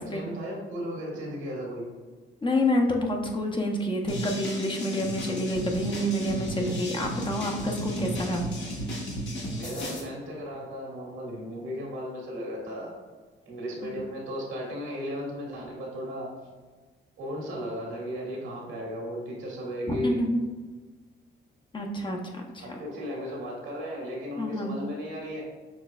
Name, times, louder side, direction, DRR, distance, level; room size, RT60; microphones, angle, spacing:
voice 1, 0.0-1.8 9.5-12.9 13.5-16.3 17.2-20.2 22.6-25.5, equal, 90° right, -2 dB, 1.5 m, -35 dB
voice 2, 2.4-8.4 13.8-13.9 19.9-20.4 21.7-22.8 24.4-24.7, left 1 dB, 25° left, 1 dB, 0.7 m, -28 dB
sound 1, 4.1-10.0, equal, 65° left, 1.3 m, -34 dB
6.3 x 3.2 x 2.3 m, 1.4 s
cardioid pair, 90°, 20 cm